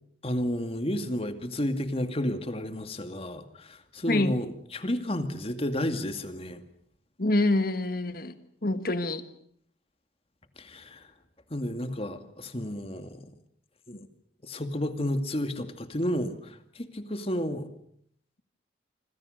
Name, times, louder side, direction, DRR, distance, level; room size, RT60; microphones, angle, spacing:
voice 1, 0.2-6.6 10.6-11.1 11.5-13.3 13.9-14.1 14.4-17.7, left 1 dB, 35° left, 8 dB, 2.3 m, -31 dB
voice 2, 7.2-8.4 8.6-9.2, left 2 dB, 55° left, 10 dB, 1.8 m, -26 dB
26.0 x 26.0 x 6.7 m, 0.66 s
head